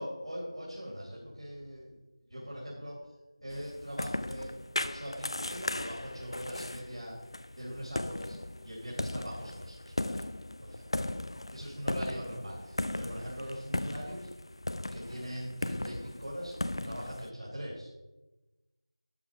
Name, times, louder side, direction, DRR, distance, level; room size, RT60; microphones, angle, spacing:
voice 1, 0.0-2.0 2.3-3.1 3.4-7.2 7.6-10.2 10.6-11.1 11.5-14.3 14.9-17.9, equal, 90° right, -6 dB, 3.5 m, -41 dB
sound 1, 3.5-17.3, left 1 dB, 65° left, 0.5 m, -37 dB
12.5 x 5.0 x 4.9 m, 1.1 s
figure-of-eight pair, 175°, 3 cm